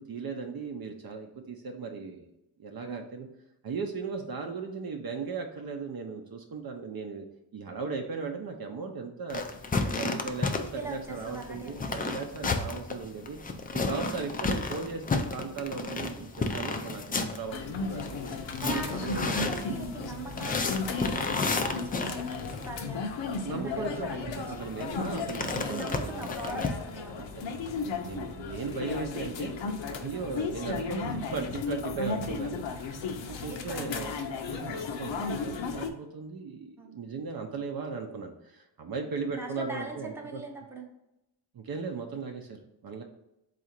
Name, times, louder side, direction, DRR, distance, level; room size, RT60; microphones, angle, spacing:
voice 1, 0.0-2.3 2.6-3.3 3.6-7.3 7.5-9.4 10.0-18.1 18.6-19.5 23.4-26.7 27.1-34.2 34.4-40.4 41.5-43.0, right 4 dB, 50° right, 4 dB, 0.6 m, -37 dB
sound 1, 9.3-22.7 24.4-26.7, left 3 dB, 20° left, 0.3 m, -33 dB
voice 2, 10.5-12.2 14.0-14.2 17.4-25.0 25.7-27.4 30.1-30.3 33.3-34.2 36.8-36.9 39.3-40.9, right 3 dB, 5° right, 0 dB, 0.7 m, -42 dB
sound 2, 17.5-35.9, left 4 dB, 70° left, 0.6 m, -35 dB
3.8 x 2.5 x 4.3 m, 0.89 s
cardioid pair, 90°, 46 cm